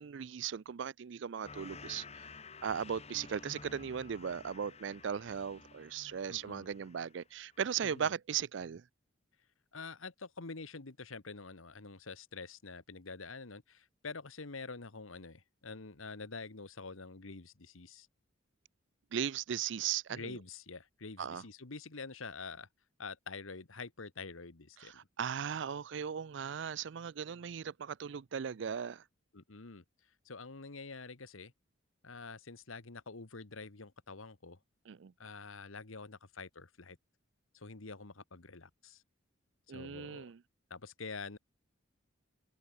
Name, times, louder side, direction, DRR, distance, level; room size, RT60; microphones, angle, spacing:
voice 1, 0.0-2.3 2.6-8.8 19.1-20.4 21.2-21.4 24.8-29.0 34.9-35.1 39.7-40.4, right 7 dB, 60° right, 0.4 m, -38 dB
sound 1, 1.4-7.2 7.5-8.0, left 4 dB, 30° left, 2.0 m, -52 dB
voice 2, 6.3-6.7 7.8-8.1 9.7-18.1 20.1-22.7 23.0-25.0 29.3-29.8 30.2-31.5 32.0-34.6 35.2-37.0 37.5-39.0 39.7-40.3 40.7-41.4, left 4 dB, 90° left, 1.5 m, -47 dB
head